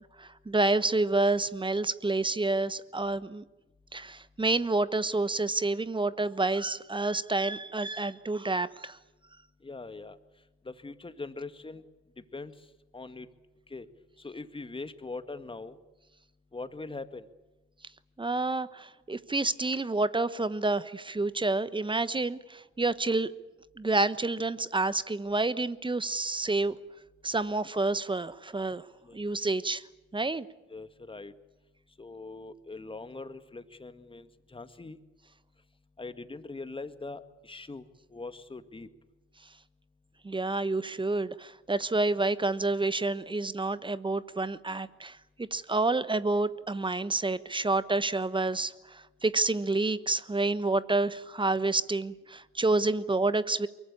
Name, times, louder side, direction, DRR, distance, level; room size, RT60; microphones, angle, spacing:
voice 1, 0.2-3.4 3.9-9.0 18.2-23.3 23.8-26.8 27.2-28.8 29.1-29.8 30.1-30.4 40.2-53.7, right 2 dB, 15° right, 16 dB, 1.2 m, -29 dB
voice 2, 9.6-10.2 10.7-11.8 12.3-12.5 12.9-13.3 13.7-13.9 14.2-15.8 16.5-17.3 29.0-29.2 30.7-31.3 32.0-35.0 36.0-37.8 38.1-38.9, left 3 dB, 15° left, 11 dB, 2.0 m, -41 dB
24.0 x 23.0 x 8.7 m, 1.1 s
hypercardioid pair, 65°, 33 cm